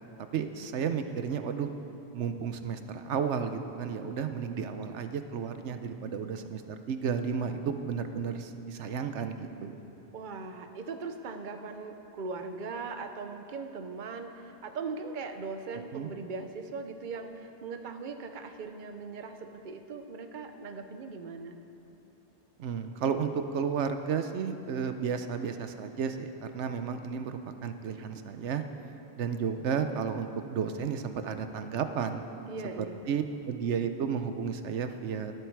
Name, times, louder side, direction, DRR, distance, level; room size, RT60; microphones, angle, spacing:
voice 1, 0.3-1.7 2.1-9.7 15.9-16.1 22.6-28.6 29.2-32.2 32.8-35.3, right 6 dB, 85° right, 8 dB, 1.1 m, -32 dB
voice 2, 10.1-21.6 32.5-33.0, right 4 dB, 50° right, 7 dB, 0.9 m, -39 dB
23.5 x 8.1 x 4.7 m, 3.0 s
omnidirectional pair, 1.2 m